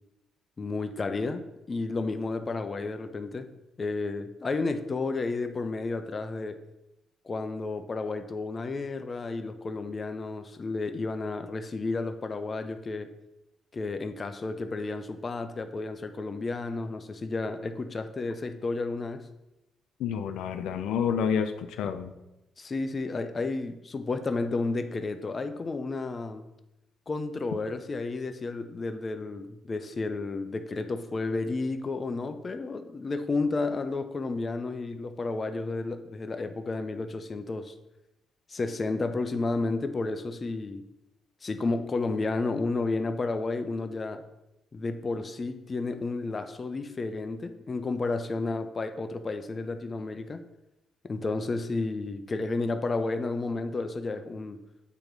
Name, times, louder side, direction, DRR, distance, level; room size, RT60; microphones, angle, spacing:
voice 1, 0.6-3.5 3.8-6.6 7.2-13.1 13.7-19.3 22.6-26.5 27.1-37.7 38.5-40.8 41.4-44.2 44.7-50.4 51.0-54.6, left 3 dB, 35° left, 0.6 m, -32 dB
voice 2, 20.0-22.1, left 7 dB, 85° left, 0.5 m, -29 dB
8.3 x 3.0 x 5.2 m
cardioid pair, 90°, 0 cm